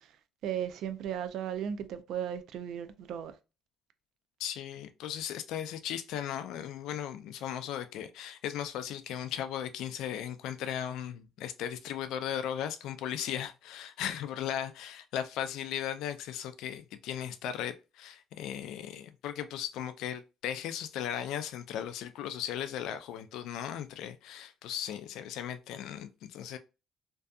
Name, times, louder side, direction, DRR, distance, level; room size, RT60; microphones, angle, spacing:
voice 1, 0.4-3.3, right 9 dB, 70° right, 0.3 m, -36 dB
voice 2, 4.4-26.6, left 10 dB, 80° left, 0.3 m, -37 dB
2.6 x 2.3 x 2.3 m
cardioid pair, 140°, 0 cm